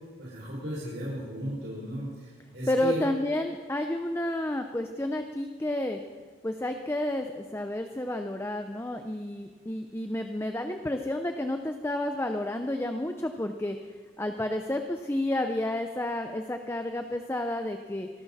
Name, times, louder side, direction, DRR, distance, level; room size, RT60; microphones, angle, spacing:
voice 1, 0.2-3.0, equal, 85° right, -8 dB, 5.8 m, -35 dB
voice 2, 2.7-6.0 6.4-13.8 14.2-18.1, left 1 dB, 15° left, 6 dB, 0.6 m, -30 dB
25.0 x 13.0 x 4.2 m, 1.5 s
head